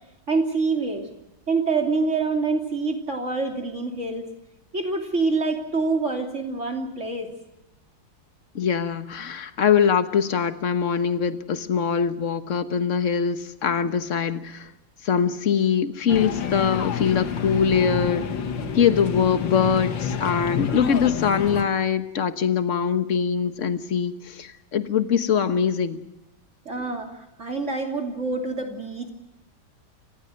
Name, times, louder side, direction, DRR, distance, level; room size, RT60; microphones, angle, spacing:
voice 1, 0.3-1.1 1.5-4.3 4.7-7.3 26.6-29.1, right 3 dB, 35° right, 3 dB, 3.2 m, -26 dB
voice 2, 8.5-14.7 15.0-18.2 18.7-26.0, left 7 dB, 45° left, 10 dB, 1.4 m, -23 dB
sound 1, 16.1-21.7, left 6 dB, 70° left, 2.2 m, -29 dB
28.5 x 15.5 x 7.9 m, 0.99 s
omnidirectional pair, 2.1 m